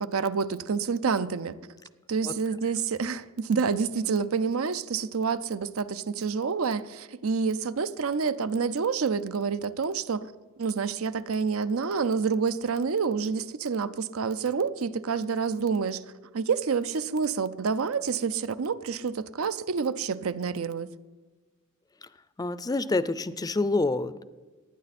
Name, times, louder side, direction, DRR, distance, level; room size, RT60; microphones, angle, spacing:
voice 1, 0.0-1.6 2.1-10.3 10.6-16.0 16.3-20.9, right 5 dB, 85° right, 15 dB, 0.6 m, -28 dB
voice 2, 22.4-24.2, left 2 dB, 20° left, 15 dB, 0.4 m, -27 dB
19.0 x 9.6 x 4.2 m, 1.3 s
head